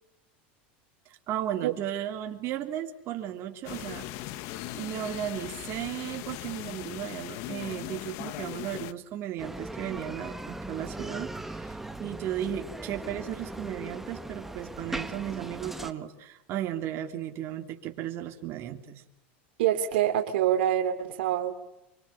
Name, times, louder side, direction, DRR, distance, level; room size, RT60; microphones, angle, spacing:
voice 1, 1.1-4.1 4.7-19.0, right 11 dB, 50° right, 4 dB, 3.3 m, -35 dB
sound 1, 3.7-8.9, left 15 dB, 60° left, 1.5 m, -39 dB
Bicycle, 9.4-15.9, right 1 dB, 5° right, 1.7 m, -39 dB
voice 2, 19.6-21.5, right 11 dB, 80° right, 6 dB, 2.9 m, -25 dB
25.5 x 25.0 x 8.8 m, 0.90 s
supercardioid pair, 115°, 6 cm